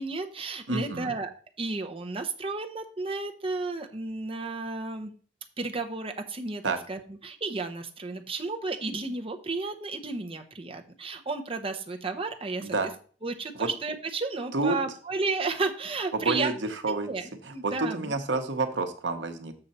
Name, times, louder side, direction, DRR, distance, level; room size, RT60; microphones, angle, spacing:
voice 1, 0.0-1.3 1.6-5.1 5.6-12.7 13.2-16.5 16.9-18.2, right 3 dB, 30° right, 4 dB, 0.9 m, -33 dB
voice 2, 0.7-1.1 6.6-6.8 12.6-12.9 13.5-13.7 14.5-14.8 16.1-17.1 17.6-19.6, right 3 dB, 85° right, 7 dB, 1.0 m, -29 dB
6.9 x 6.5 x 4.2 m, 0.41 s
head